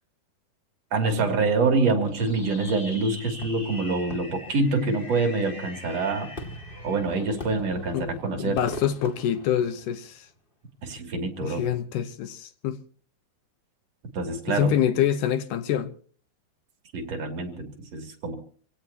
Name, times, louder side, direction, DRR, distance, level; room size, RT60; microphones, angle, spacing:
voice 1, 0.9-6.3 6.8-8.6 10.8-11.7 14.1-14.7 16.9-18.4, right 3 dB, 45° right, 3.5 m, -26 dB
Fireworks, 2.0-10.2, left 1 dB, 20° left, 1.5 m, -41 dB
voice 2, 8.3-10.3 11.4-12.8 14.5-15.9, left 10 dB, 70° left, 2.0 m, -26 dB
27.5 x 17.5 x 2.9 m
omnidirectional pair, 4.7 m